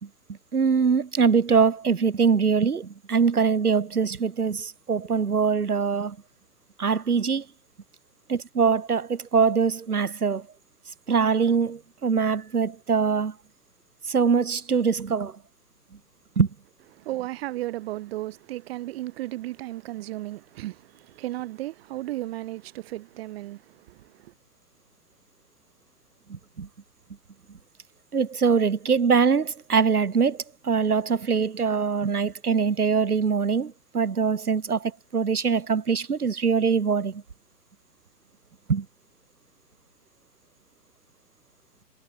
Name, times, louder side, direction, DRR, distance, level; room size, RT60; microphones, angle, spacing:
voice 1, 0.5-6.2 6.8-7.5 8.3-10.5 11.1-13.3 14.1-15.4 16.4-16.5 26.3-26.7 28.1-37.2 38.7-38.9, right 5 dB, 70° right, 4.2 m, -23 dB
voice 2, 16.9-24.3, right 16 dB, 40° right, 4.2 m, -35 dB
figure-of-eight pair, 120°, 46 cm